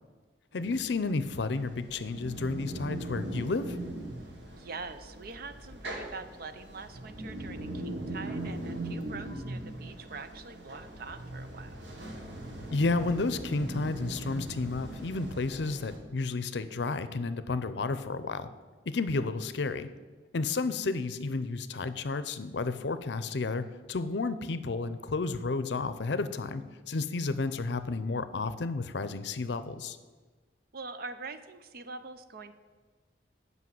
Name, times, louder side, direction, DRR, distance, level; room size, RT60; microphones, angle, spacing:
voice 1, 0.5-3.8 12.7-18.5 18.9-19.9 20.3-30.0, left 3 dB, 70° left, 13 dB, 0.6 m, -32 dB
sound 1, 0.6-16.0, right 1 dB, 70° right, 1.6 m, -40 dB
voice 2, 4.5-11.8 30.7-32.5, right 4 dB, 55° right, 11 dB, 0.6 m, -44 dB
8.5 x 5.5 x 7.6 m, 1.4 s
head